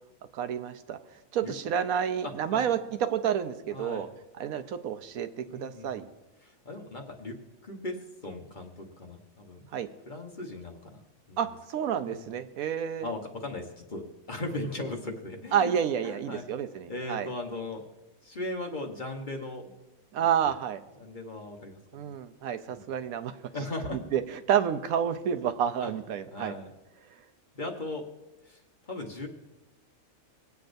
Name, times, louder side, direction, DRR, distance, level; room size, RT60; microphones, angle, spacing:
voice 1, 0.3-1.0 1.3-4.1 4.4-6.1 9.7-9.9 11.4-13.1 15.5-17.3 20.1-20.8 21.9-23.4 23.9-26.5, right 8 dB, 80° right, 9 dB, 1.1 m, -29 dB
voice 2, 2.2-2.7 3.7-4.1 5.5-6.0 6.4-7.4 7.6-8.0 8.2-9.7 10.1-11.0 11.3-11.4 12.1-12.2 13.0-15.7 16.0-16.5 16.9-17.8 18.2-19.7 20.4-20.5 21.0-22.1 22.7-22.8 23.5-24.1 25.8-25.9 26.3-26.7 27.5-28.1 28.4-29.3, left 2 dB, 40° left, 2 dB, 1.1 m, -38 dB
20.5 x 8.2 x 2.6 m, 1.0 s
omnidirectional pair, 1.5 m